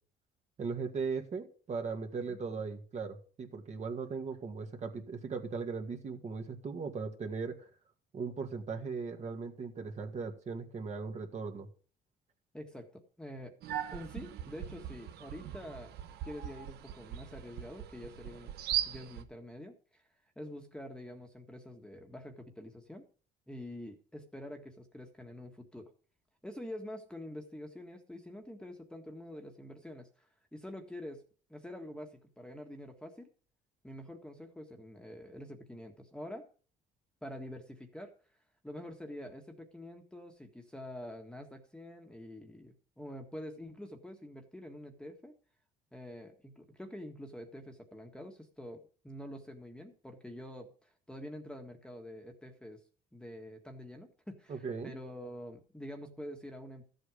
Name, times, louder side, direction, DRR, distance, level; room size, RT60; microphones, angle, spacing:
voice 1, 0.6-7.7 8.1-11.7 54.5-55.0, right 5 dB, 40° right, 4 dB, 2.1 m, -38 dB
voice 2, 12.5-13.5 13.9-15.9 16.2-18.5 18.8-20.0 20.3-23.0 23.5-25.9 26.4-31.2 31.5-33.3 33.8-36.5 37.2-38.1 38.6-45.3 45.9-52.8 53.1-56.8, left 1 dB, 5° left, 4 dB, 1.7 m, -46 dB
sound 1, 13.6-19.2, right 11 dB, 75° right, 1.2 m, -39 dB
13.5 x 8.0 x 5.0 m, 0.41 s
cardioid pair, 110°, 17 cm